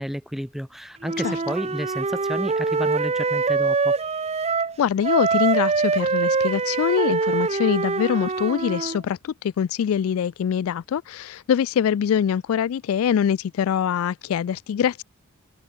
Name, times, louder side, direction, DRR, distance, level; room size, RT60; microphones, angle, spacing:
voice 1, 0.0-3.9, equal, ahead, 1.7 m, -31 dB
Wind instrument woodwind instrument, 1.0-4.8 5.0-9.0, right 4 dB, 30° right, 0.7 m, -24 dB
voice 2, 4.8-15.0, left 8 dB, 65° left, 0.3 m, -23 dB
head